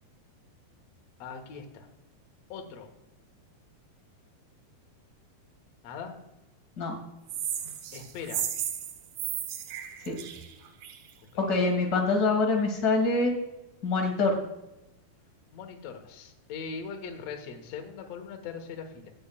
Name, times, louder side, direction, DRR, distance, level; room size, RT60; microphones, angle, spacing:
voice 1, 1.2-1.9 2.5-2.9 5.8-6.1 7.9-8.4 15.5-19.1, left 6 dB, 65° left, 4 dB, 1.8 m, -40 dB
sound 1, 7.3-11.1, right 9 dB, 70° right, 2.0 m, -34 dB
voice 2, 11.4-13.3 13.8-14.4, left 3 dB, 45° left, 2 dB, 1.2 m, -25 dB
18.0 x 6.7 x 2.3 m, 0.93 s
omnidirectional pair, 4.5 m